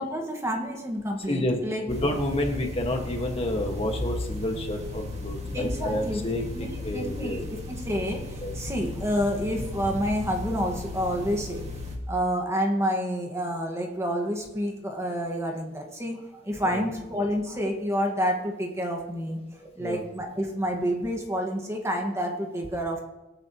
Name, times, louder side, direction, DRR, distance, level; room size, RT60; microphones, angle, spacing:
voice 1, 0.0-1.9 5.5-6.2 6.5-6.7 6.9-11.7 12.1-23.0, equal, 15° right, 2 dB, 1.7 m, -29 dB
voice 2, 1.3-1.6 1.9-7.4 8.4-8.5 16.7-16.9 19.8-20.0, left 1 dB, 35° left, 2 dB, 1.6 m, -29 dB
sound 1, 1.9-12.0, left 2 dB, 40° right, 2.0 m, -35 dB
24.0 x 8.9 x 3.1 m, 1.0 s
head